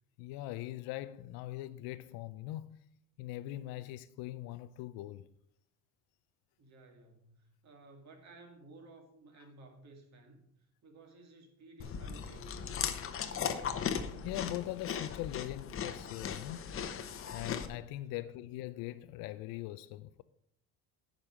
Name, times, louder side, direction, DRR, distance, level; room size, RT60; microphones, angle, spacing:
voice 1, 0.2-2.8 3.2-5.3 14.2-16.8 17.3-20.2, left 15 dB, 85° left, 0.5 m, -41 dB
voice 2, 6.6-12.6 18.1-18.3, right 2 dB, 50° right, 2.4 m, -56 dB
Chewing mastication, 11.8-17.7, left 7 dB, 35° left, 0.9 m, -38 dB
9.8 x 5.4 x 6.2 m
cardioid pair, 130°, 35 cm